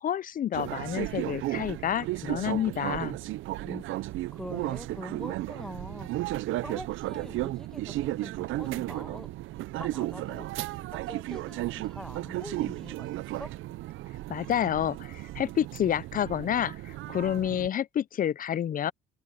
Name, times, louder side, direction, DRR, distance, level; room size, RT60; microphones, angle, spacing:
voice 1, 0.0-3.2 14.3-18.9, left 10 dB, 45° left, 0.4 m, -29 dB
sound 1, 0.5-17.7, right 16 dB, 85° right, 0.5 m, -34 dB
voice 2, 3.6-9.3 9.7-13.5, left 1 dB, 5° left, 1.3 m, -44 dB
cardioid pair, 90°, 20 cm